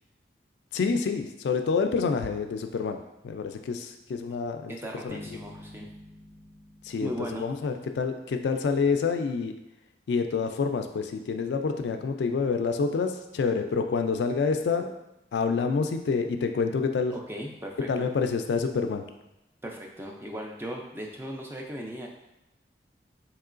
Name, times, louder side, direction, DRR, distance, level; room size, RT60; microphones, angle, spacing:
voice 1, 0.7-3.0 3.2-4.7 5.0-5.2 6.8-7.1 7.4-9.5 10.1-14.9 15.3-17.1 17.8-19.0, left 5 dB, 75° left, 6 dB, 0.3 m, -27 dB
voice 2, 4.7-5.9 7.0-7.5 17.1-18.1 19.6-22.1, equal, 15° right, 0 dB, 0.3 m, -37 dB
sound 1, 5.1-8.1, left 2 dB, 45° right, 0.6 m, -48 dB
3.6 x 3.0 x 2.5 m, 0.94 s
head